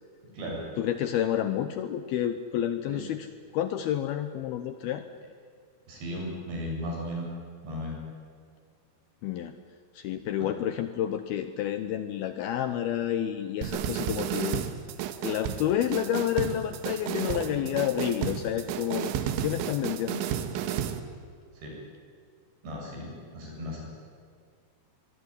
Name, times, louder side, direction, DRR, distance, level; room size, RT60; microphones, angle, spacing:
voice 1, 0.8-3.3 3.5-5.0 9.2-9.6 9.9-14.6 15.2-19.1 19.4-20.2, left 11 dB, 75° left, 10 dB, 2.4 m, -29 dB
voice 2, 5.9-7.3 7.6-8.0 10.4-10.5 21.5-21.7 22.6-23.8, equal, 70° right, -2 dB, 9.9 m, -36 dB
sound 1, 13.6-21.0, right 10 dB, 85° right, 3.7 m, -32 dB
24.5 x 22.0 x 9.9 m, 2.2 s
omnidirectional pair, 5.3 m